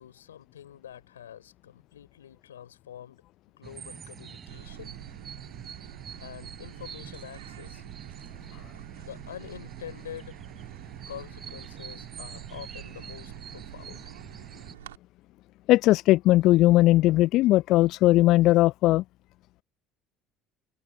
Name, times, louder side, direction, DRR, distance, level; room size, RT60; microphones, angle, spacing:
voice 1, 0.0-3.2 3.6-5.0 6.2-7.9 9.0-10.4 11.1-14.1, left 10 dB, 80° left, 4.5 m, -45 dB
sound 1, 3.6-14.7, right 7 dB, 35° right, 7.7 m, -45 dB
sound 2, 4.5-15.0, right 13 dB, 75° right, 2.3 m, -47 dB
voice 2, 15.7-19.0, left 17 dB, 55° left, 0.4 m, -19 dB
figure-of-eight pair, 60°, 0 cm